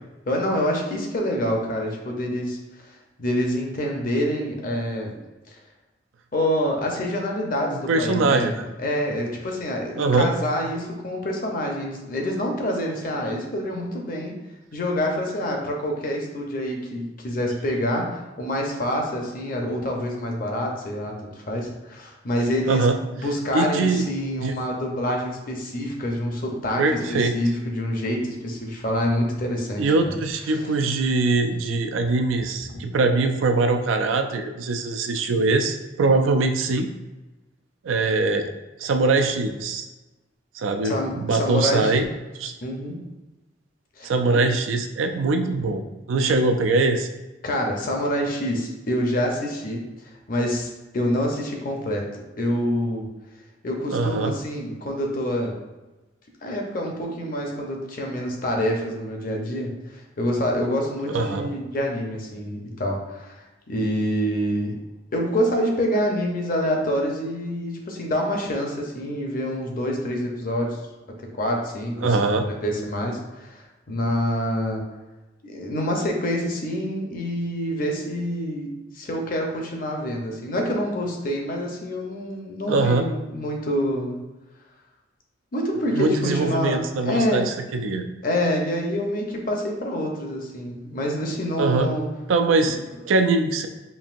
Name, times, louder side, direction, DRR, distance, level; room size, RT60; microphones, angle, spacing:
voice 1, 0.3-2.6 2.8-5.1 6.3-14.4 14.7-26.8 27.1-30.2 30.5-30.6 32.7-32.8 40.8-41.9 42.6-43.0 44.0-44.4 47.4-53.1 53.6-55.6 56.4-64.8 65.1-70.8 71.4-74.8 75.4-84.2 85.5-86.8 87.1-87.4 88.2-92.1 92.6-92.7, equal, 45° left, 1 dB, 0.6 m, -27 dB
voice 2, 7.7-8.7 10.0-10.3 22.7-23.0 23.5-24.1 24.4-24.6 26.8-27.4 29.8-36.9 37.8-38.5 38.8-39.9 40.5-42.1 42.4-42.5 44.0-47.1 53.9-54.3 61.1-61.5 72.0-72.5 82.7-83.1 85.9-88.1 91.6-91.9 92.3-93.7, right 3 dB, 85° right, 6 dB, 0.4 m, -22 dB
5.4 x 2.6 x 2.5 m, 1.1 s
head